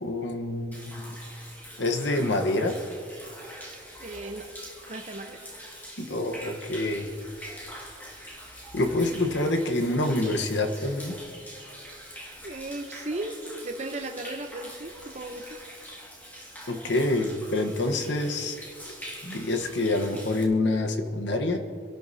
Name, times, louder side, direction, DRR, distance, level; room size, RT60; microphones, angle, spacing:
voice 1, 0.0-1.2 1.8-2.8 6.0-7.1 8.7-11.2 16.7-18.6 19.2-21.6, left 2 dB, 75° left, 5 dB, 1.2 m, -27 dB
Human voice / Rain / Stream, 0.7-20.4, equal, 10° left, 1.9 m, -44 dB
voice 2, 4.0-4.5 4.9-5.5 12.4-13.4 13.6-15.6, right 2 dB, 40° right, 5 dB, 0.8 m, -36 dB
26.0 x 12.0 x 2.8 m, 2.4 s
head